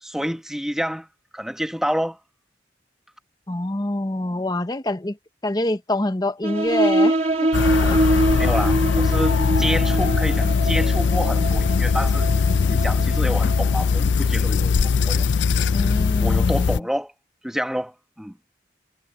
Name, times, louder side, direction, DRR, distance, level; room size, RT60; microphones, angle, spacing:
voice 1, 0.0-1.1 1.3-2.2 8.4-12.3 12.7-15.3 16.2-17.1 17.4-18.3, equal, 5° right, 1.3 m, -28 dB
voice 2, 3.5-5.2 5.4-7.5 7.8-8.0 15.7-16.9, left 1 dB, 20° left, 0.9 m, -26 dB
sound 1, 6.4-13.7, right 1 dB, 40° right, 2.9 m, -24 dB
sound 2, 7.5-16.8, left 5 dB, 85° left, 0.4 m, -20 dB
head